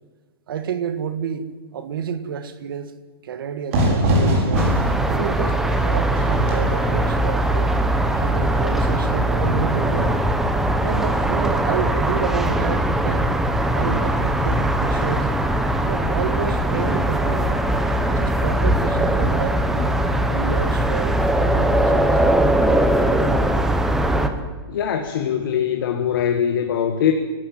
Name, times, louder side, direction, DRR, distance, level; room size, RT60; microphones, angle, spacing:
voice 1, 0.5-2.9 3.2-4.8 5.1-7.7 8.1-10.2 10.8-13.4 13.8-15.3 15.9-17.6 18.1-20.0 20.3-22.2, right 8 dB, 60° right, 1.8 m, -29 dB
Fire / Fireworks, 3.7-9.2, equal, 35° right, 5.1 m, -24 dB
sound 1, 4.5-24.3, right 1 dB, ahead, 0.8 m, -20 dB
voice 2, 24.7-27.1, left 9 dB, 55° left, 1.7 m, -22 dB
27.5 x 12.5 x 9.3 m
hypercardioid pair, 175°, 13 cm